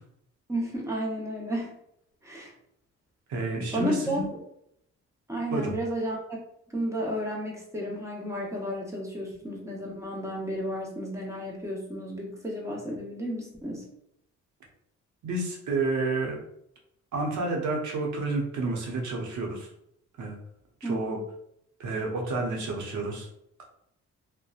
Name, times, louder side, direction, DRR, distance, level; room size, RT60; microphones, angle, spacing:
voice 1, 0.5-1.8 2.2-2.5 3.7-4.3 5.3-6.4 6.7-13.9 20.8-21.2, equal, 10° right, -3 dB, 0.8 m, -32 dB
voice 2, 3.3-4.3 5.5-5.7 15.2-16.4 17.1-19.7 20.2-20.4 20.8-21.2 21.8-23.3, right 3 dB, 70° right, 0 dB, 0.8 m, -30 dB
2.7 x 2.1 x 2.3 m, 0.74 s
cardioid pair, 90°, 30 cm